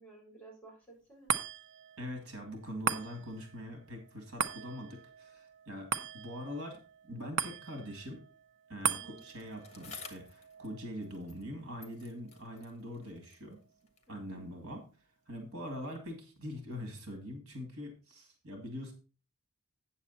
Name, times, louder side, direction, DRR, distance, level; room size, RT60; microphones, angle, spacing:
voice 1, 0.0-1.3 8.8-9.3 14.1-14.5, right 3 dB, 10° left, -2 dB, 4.5 m, -55 dB
sound 1, 1.3-13.9 14.3-14.4, right 6 dB, 55° right, 0.6 m, -40 dB
voice 2, 2.0-8.2 8.7-13.6 14.1-14.8 15.3-18.9, equal, 80° right, 4 dB, 2.4 m, -43 dB
Bicycle, 9.2-11.5 11.8-14.2 15.0-15.1, left 5 dB, 30° left, 1.4 m, -53 dB
8.6 x 7.2 x 4.2 m, 0.35 s
head